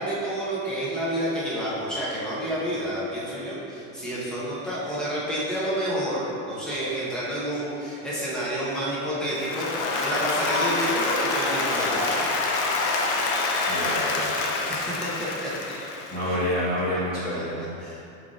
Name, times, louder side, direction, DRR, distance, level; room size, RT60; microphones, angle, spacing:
voice 1, 0.0-12.3 14.7-15.5 16.3-16.4 17.3-17.4 17.8-18.0, equal, ahead, -8 dB, 0.3 m, -29 dB
Applause, 9.3-16.5, left 3 dB, 60° left, 0.6 m, -26 dB
voice 2, 13.7-14.4 16.1-17.7, equal, 20° left, -10 dB, 1.2 m, -28 dB
4.5 x 3.9 x 2.4 m, 2.5 s
cardioid pair, 165°, 38 cm